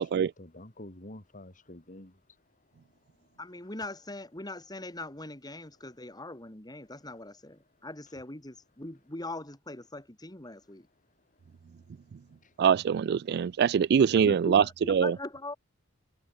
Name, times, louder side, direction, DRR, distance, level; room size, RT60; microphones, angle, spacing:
voice 1, 0.0-2.1, left 1 dB, 40° left, 3.7 m, -47 dB
voice 2, 3.4-10.9 14.1-15.6, left 2 dB, 20° left, 3.4 m, -41 dB
voice 3, 12.6-15.1, right 7 dB, 50° right, 0.3 m, -24 dB
head